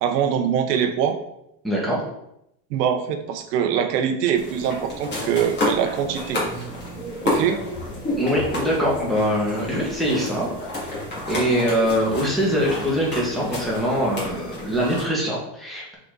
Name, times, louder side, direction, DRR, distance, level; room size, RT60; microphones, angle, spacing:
voice 1, 0.0-1.2 2.7-6.4 7.2-7.6, right 8 dB, 90° right, 7 dB, 1.1 m, -23 dB
voice 2, 1.6-2.0 8.2-10.9 11.3-15.9, equal, ahead, -6 dB, 1.9 m, -23 dB
sound 1, 4.3-15.1, left 1 dB, 20° left, 2.3 m, -30 dB
6.2 x 4.3 x 3.9 m, 0.79 s
supercardioid pair, 145°, 47 cm